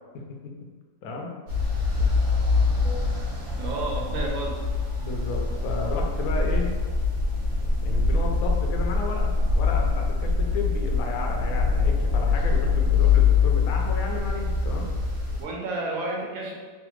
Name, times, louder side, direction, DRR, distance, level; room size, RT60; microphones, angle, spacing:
voice 1, 0.1-0.5 1.0-1.3 2.7-3.1 5.0-6.7 7.8-14.9, left 3 dB, 80° left, 1 dB, 1.0 m, -33 dB
sound 1, 1.5-15.4, left 4 dB, 60° right, 1.1 m, -24 dB
voice 2, 3.6-4.5 15.4-16.5, right 2 dB, 80° right, -2 dB, 1.1 m, -31 dB
3.2 x 2.1 x 3.1 m, 1.4 s
omnidirectional pair, 1.5 m